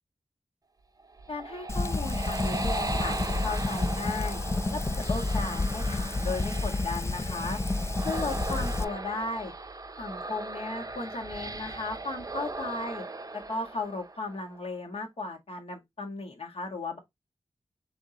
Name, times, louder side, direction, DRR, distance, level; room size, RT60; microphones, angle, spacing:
sound 1, 1.0-14.6, right 3 dB, 35° right, 0.7 m, -38 dB
voice 1, 1.3-4.4 4.7-4.8 5.1-7.6 8.0-9.5 10.0-13.0 13.3-17.0, left 3 dB, 65° left, 1.7 m, -35 dB
Fire, 1.7-8.8, left 2 dB, 25° left, 0.3 m, -30 dB
6.0 x 2.6 x 2.9 m
wide cardioid pair, 80°, 11 cm